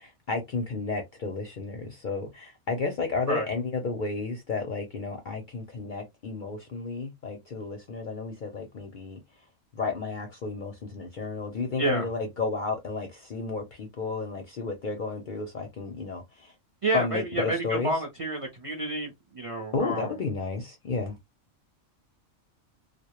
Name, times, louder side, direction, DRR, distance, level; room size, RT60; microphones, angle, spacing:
voice 1, 0.0-9.2 9.7-16.5 16.9-17.9 19.7-21.2, left 4 dB, 55° left, 0.5 m, -32 dB
voice 2, 11.8-12.1 16.8-20.1, right 2 dB, 40° right, 0.5 m, -29 dB
2.1 x 2.0 x 2.9 m
omnidirectional pair, 1.3 m